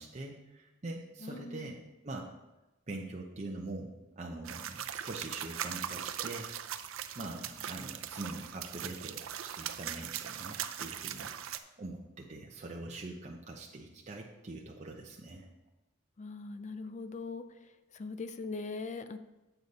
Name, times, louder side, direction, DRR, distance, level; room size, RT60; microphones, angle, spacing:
voice 1, 0.0-2.3 2.9-6.5 7.1-11.3 11.8-15.5, right 2 dB, 35° right, 0 dB, 0.7 m, -43 dB
voice 2, 1.2-1.7 7.2-7.4 16.2-17.4 17.9-19.2, left 3 dB, 35° left, 11 dB, 0.4 m, -41 dB
sound 1, 4.4-11.6, right 10 dB, 85° right, 0.5 m, -40 dB
8.0 x 6.9 x 4.1 m, 1.0 s
head